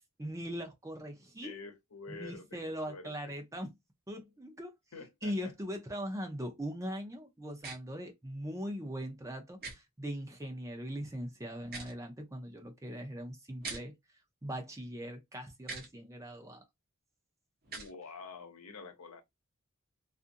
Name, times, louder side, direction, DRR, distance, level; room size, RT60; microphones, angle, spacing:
voice 1, 0.2-1.5 2.1-3.7 4.1-4.7 5.2-13.9 14.4-16.6, equal, 15° right, 0.6 m, -40 dB
voice 2, 1.4-3.3 4.9-5.5 17.7-19.2, left 4 dB, 90° left, 0.8 m, -48 dB
sound 1, 7.6-7.8 9.6-9.8 11.6-12.0 13.6-13.8 15.6-15.9 17.6-17.9, right 4 dB, 45° right, 0.9 m, -42 dB
2.6 x 2.5 x 2.5 m
head